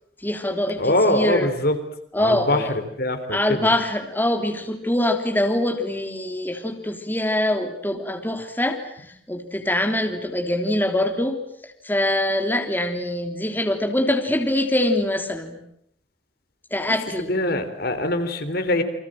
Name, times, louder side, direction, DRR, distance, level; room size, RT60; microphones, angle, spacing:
voice 1, 0.2-1.5 2.1-2.7 3.3-8.8 9.3-11.4 11.8-15.6 16.7-17.3, left 1 dB, 10° left, 4 dB, 3.3 m, -23 dB
voice 2, 0.8-1.8 2.2-3.6 17.1-18.8, left 1 dB, 55° left, 9 dB, 3.5 m, -23 dB
29.5 x 25.0 x 7.7 m, 0.71 s
head